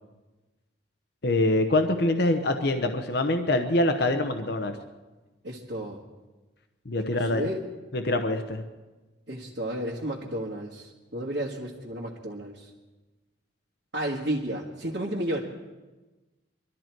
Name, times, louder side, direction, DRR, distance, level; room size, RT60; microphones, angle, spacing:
voice 1, 1.2-4.8 6.9-7.4 7.9-8.6, left 2 dB, 55° left, 6 dB, 0.9 m, -24 dB
voice 2, 5.4-6.0 7.2-7.6 9.3-12.7 13.9-15.4, right 1 dB, 65° right, -3 dB, 1.7 m, -32 dB
22.5 x 13.0 x 4.6 m, 1.2 s
head